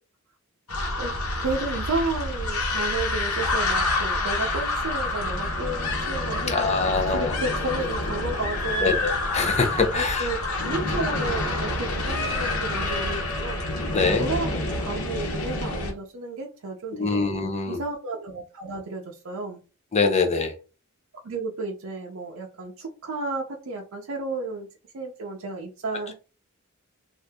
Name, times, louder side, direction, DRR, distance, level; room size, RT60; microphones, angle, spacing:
sound 1, 0.7-15.9, left 2 dB, 85° left, 1.1 m, -27 dB
voice 1, 1.4-9.0 9.9-10.4 10.6-13.6 14.2-17.2 17.7-19.6 21.2-24.7 24.9-26.1, right 2 dB, 70° right, 0 dB, 0.6 m, -32 dB
voice 2, 6.5-7.3 8.8-10.3 13.9-14.3 17.0-17.8 19.9-20.5, left 4 dB, 30° left, 5 dB, 0.6 m, -24 dB
2.8 x 2.5 x 3.4 m, 0.33 s
head